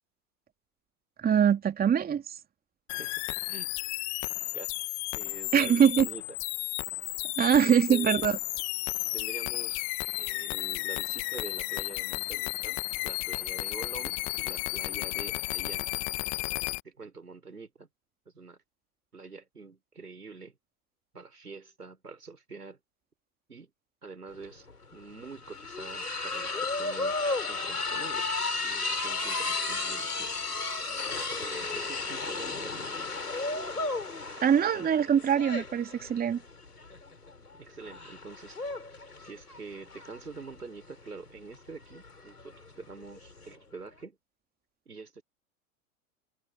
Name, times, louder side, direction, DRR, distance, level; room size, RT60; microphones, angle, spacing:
voice 1, 1.2-2.4 5.5-6.1 7.4-8.4 34.4-36.4, right 8 dB, 20° right, 3.0 m, -23 dB
sound 1, 2.9-16.8, left 28 dB, 40° left, 1.8 m, -33 dB
voice 2, 3.0-3.7 4.5-4.9 5.1-6.2 7.5-8.3 9.1-16.0 16.8-17.9 18.3-18.6 19.1-20.6 21.1-22.8 23.5-23.7 24.0-24.7 24.9-28.3 28.6-30.3 31.4-32.9 37.5-38.6 39.2-44.2 44.9-45.2, right 4 dB, 85° right, 6.4 m, -46 dB
sound 2, 24.3-24.4 24.7-43.5, left 3 dB, 85° left, 6.6 m, -34 dB
figure-of-eight pair, 95°, 45 cm